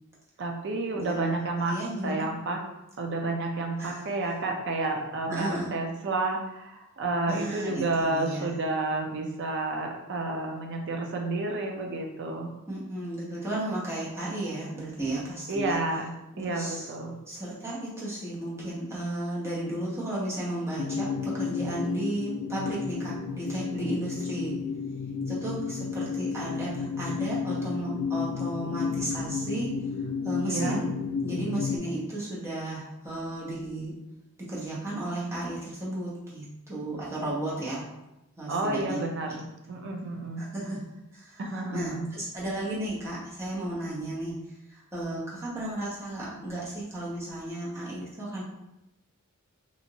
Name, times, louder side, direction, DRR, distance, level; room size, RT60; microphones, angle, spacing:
voice 1, 0.4-1.8 2.0-2.6 3.0-12.5 15.5-16.1 16.4-17.2 30.4-30.8 38.5-40.4 41.4-42.1, right 2 dB, 55° right, 2 dB, 0.4 m, -30 dB
voice 2, 0.9-1.3 1.7-2.2 3.8-4.0 5.3-5.8 7.3-8.6 12.7-15.8 16.3-16.9 17.3-24.6 25.3-29.7 30.2-30.9 31.2-33.9 34.5-37.9 38.4-39.0 40.4-40.8 41.1-41.4 41.7-44.4 44.7-48.4, right 1 dB, 10° right, -7 dB, 0.8 m, -34 dB
sound 1, 20.8-31.8, left 5 dB, 85° left, 0.3 m, -32 dB
2.9 x 2.5 x 2.7 m, 0.92 s
head